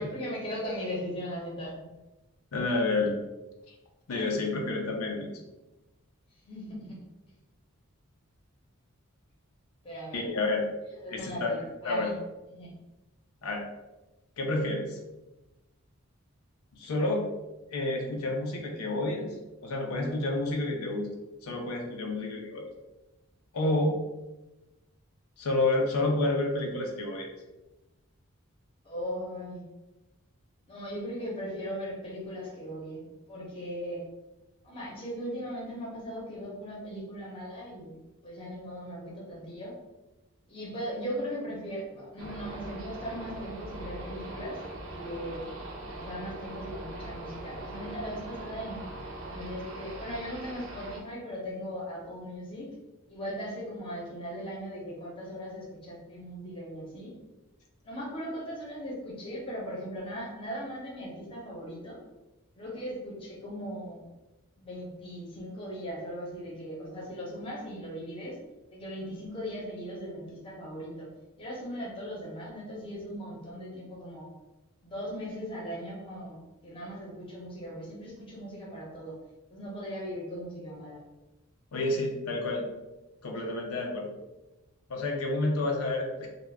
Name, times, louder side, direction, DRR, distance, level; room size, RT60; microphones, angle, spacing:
voice 1, 0.0-1.9 6.4-6.9 9.8-10.3 10.9-12.2 12.5-12.7 28.8-29.6 30.7-34.1 34.6-39.7 40.5-44.6 44.9-45.4 45.9-48.8 49.2-52.7 53.1-57.1 57.8-62.0 62.6-64.0 64.6-68.4 68.7-71.1 71.4-74.3 74.8-79.2 79.5-81.0, equal, 25° left, -4 dB, 0.7 m, -38 dB
voice 2, 2.5-3.1 3.7-3.8 4.1-5.3 10.1-10.7 11.1-12.1 13.4-13.7 14.4-15.0 16.7-17.2 17.7-19.4 19.6-21.1 21.4-22.7 23.5-24.0 25.4-27.3 81.7-82.7 83.2-84.1 84.9-86.3, left 2 dB, 85° left, 1 dB, 0.5 m, -29 dB
sound 1, 42.2-51.0, right 1 dB, 65° right, 0.5 m, -41 dB
2.3 x 2.1 x 3.3 m, 1.0 s
head